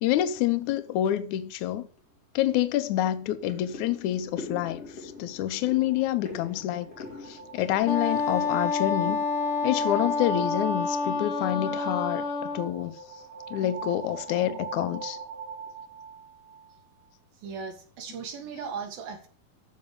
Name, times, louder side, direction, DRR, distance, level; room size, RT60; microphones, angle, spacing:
voice 1, 0.0-1.9 2.4-6.9 7.2-9.2 9.6-13.0 13.5-15.2, left 13 dB, 80° left, 1.7 m, -27 dB
sound 1, 2.0-2.1 2.5-2.6 3.0-9.6 9.8-10.4 10.8-11.0 11.3-11.4 11.9-12.1 12.4-12.6 13.1-13.6 14.1-14.3 14.6-15.3 15.7-15.8, left 3 dB, 40° left, 3.6 m, -44 dB
sound 2, 5.4-17.1, right 5 dB, 85° right, 4.4 m, -43 dB
Wind instrument woodwind instrument, 7.8-12.7, left 4 dB, 55° left, 1.5 m, -28 dB
voice 2, 17.4-19.3, right 6 dB, 70° right, 3.6 m, -37 dB
14.5 x 5.3 x 6.6 m
omnidirectional pair, 4.4 m